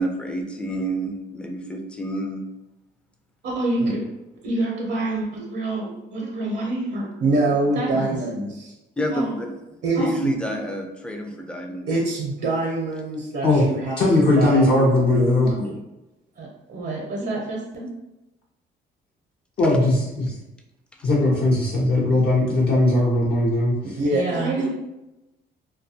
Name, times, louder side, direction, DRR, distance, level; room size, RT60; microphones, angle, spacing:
voice 1, 0.0-2.4 9.0-9.6 10.0-11.9, right 1 dB, 5° left, 3 dB, 0.4 m, -28 dB
voice 2, 3.4-4.0 4.4-8.7 9.1-9.3 9.8-10.3 11.9-15.8 16.4-17.9 23.8-24.7, right 2 dB, 60° right, -2 dB, 0.6 m, -25 dB
voice 3, 14.0-15.5 19.6-20.4 21.0-24.0, left 2 dB, 50° left, -5 dB, 0.6 m, -19 dB
2.3 x 2.2 x 2.6 m, 0.97 s
cardioid pair, 90°, 20 cm